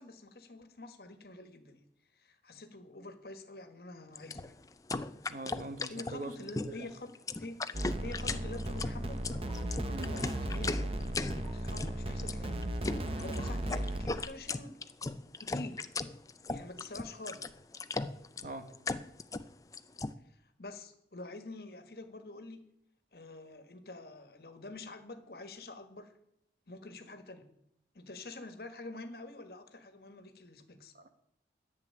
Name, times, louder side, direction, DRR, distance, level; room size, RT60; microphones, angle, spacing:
voice 1, 0.0-1.8 2.1-4.5 5.9-7.1 7.4-7.6 8.0-9.2 9.8-12.7 13.2-14.8 15.4-15.9 16.5-17.5 20.2-22.6 23.1-26.1 26.7-27.5 27.9-30.9, left 2 dB, 60° left, 8 dB, 1.6 m, -47 dB
sound 1, 4.2-20.1, left 3 dB, 20° left, 0.4 m, -38 dB
voice 2, 5.3-6.9 9.9-10.1 18.4-18.7 30.9-31.1, right 2 dB, 50° right, 8 dB, 1.4 m, -43 dB
sound 2, 7.7-14.2, right 1 dB, 30° right, 0.9 m, -36 dB
11.0 x 7.6 x 9.8 m, 0.76 s
head